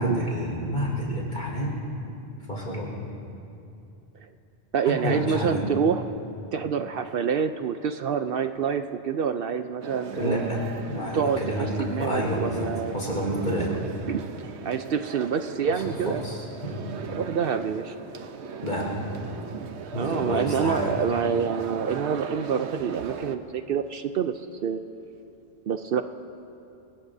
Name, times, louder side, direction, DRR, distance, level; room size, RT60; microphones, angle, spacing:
voice 1, 0.0-1.8 2.5-3.0 4.8-5.7 10.1-11.7 12.0-13.8 15.7-16.4 16.6-16.8 18.6-19.1 19.9-21.0, equal, 50° left, -3 dB, 4.6 m, -29 dB
voice 2, 4.7-6.1 6.5-10.4 11.1-13.0 13.7-13.8 14.1-14.2 14.6-16.2 17.1-18.0 19.9-24.3 24.6-24.8 25.7-26.0, right 7 dB, 65° right, 8 dB, 0.7 m, -27 dB
sound 1, 9.8-23.4, right 6 dB, 85° right, 1.1 m, -38 dB
27.5 x 19.0 x 2.7 m, 2.8 s
omnidirectional pair, 1.1 m